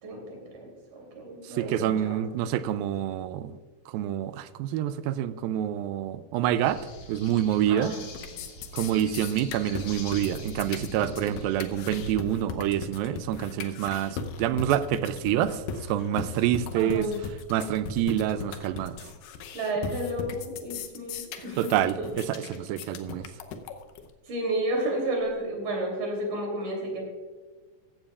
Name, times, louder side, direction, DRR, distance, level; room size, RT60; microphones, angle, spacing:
voice 1, 0.0-2.1 7.7-8.0 16.7-17.2 19.5-21.7 22.0-22.1 24.3-27.0, right 1 dB, 65° right, 0 dB, 4.6 m, -32 dB
voice 2, 1.5-3.6 3.9-6.8 7.1-7.9 8.7-15.6 15.9-17.1 17.5-19.0 21.6-23.3, right 11 dB, 85° right, 13 dB, 2.4 m, -27 dB
sound 1, 6.6-12.1, left 1 dB, 60° left, 3.5 m, -42 dB
sound 2, 7.4-7.8 8.1-24.1, left 6 dB, 75° left, 2.4 m, -38 dB
15.5 x 14.5 x 2.4 m, 1.4 s
omnidirectional pair, 4.2 m